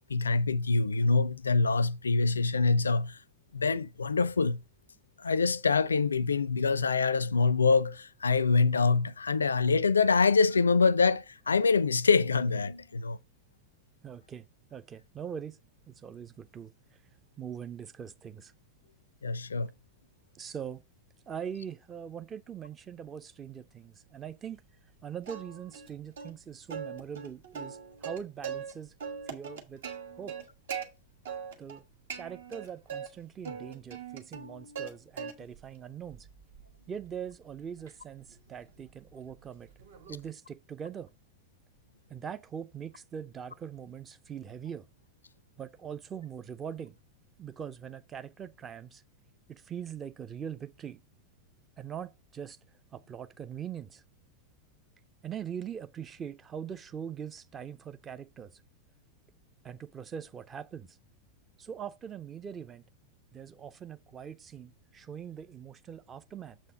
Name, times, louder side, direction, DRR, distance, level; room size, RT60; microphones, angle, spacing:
voice 1, 0.1-3.2 3.5-4.6 5.2-13.2 19.2-19.7, left 4 dB, 75° left, 0.4 m, -25 dB
voice 2, 14.0-14.5 14.7-15.6 15.9-16.7 17.4-18.5 20.3-20.8 21.3-24.6 25.0-28.9 29.3-29.8 30.2-30.3 31.6-31.8 32.1-36.3 36.9-39.7 40.1-41.1 42.1-44.9 45.6-47.0 47.4-49.0 49.5-51.0 51.8-52.6 52.9-54.0 55.2-58.5 59.6-61.0 61.6-62.8 63.3-66.6, right 8 dB, 20° right, 0.5 m, -42 dB
Plucked string instrument, 25.3-25.9 26.2-26.3 26.7-28.7 29.0-30.9 31.3-31.8 32.1-33.1 33.4-34.9 35.2-35.7 36.1-40.3, right 6 dB, 60° right, 1.3 m, -41 dB
7.0 x 4.3 x 4.9 m
figure-of-eight pair, 90°, 0 cm